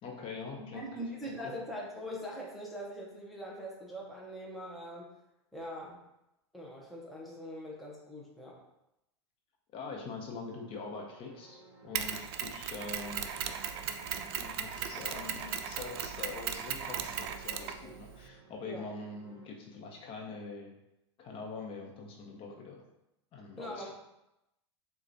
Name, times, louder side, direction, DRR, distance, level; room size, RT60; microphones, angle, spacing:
voice 1, 0.0-0.8 1.3-1.4 9.7-13.3 14.4-20.7 21.2-22.8 23.3-23.9, left 4 dB, 35° left, 0 dB, 1.0 m, -44 dB
voice 2, 0.6-5.1 5.5-6.0 6.5-8.6 18.6-18.8 23.6-23.9, equal, ahead, -4 dB, 0.8 m, -42 dB
sound 1, 10.5-19.5, right 3 dB, 35° right, 1.0 m, -57 dB
Mechanisms, 11.9-18.3, right 8 dB, 55° right, 0.4 m, -37 dB
6.4 x 2.5 x 2.7 m, 0.88 s
hypercardioid pair, 105°, 15 cm